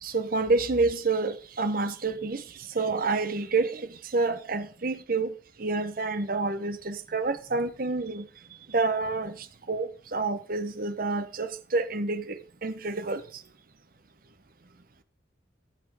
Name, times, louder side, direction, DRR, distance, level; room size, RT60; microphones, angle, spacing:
voice 1, 0.0-2.4 2.7-5.3 5.6-8.3 8.7-9.4 9.7-13.2, right 3 dB, 50° right, 0.9 m, -28 dB
15.0 x 6.1 x 4.9 m
head